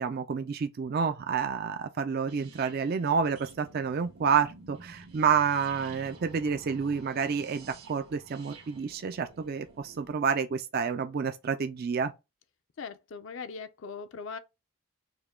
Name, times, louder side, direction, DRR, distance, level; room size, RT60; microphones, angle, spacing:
voice 1, 0.0-12.1, right 6 dB, 45° right, 0.3 m, -29 dB
sound 1, 2.3-10.1, right 3 dB, 90° right, 1.3 m, -51 dB
voice 2, 12.8-14.4, left 5 dB, 60° left, 0.4 m, -40 dB
4.9 x 2.2 x 3.6 m
head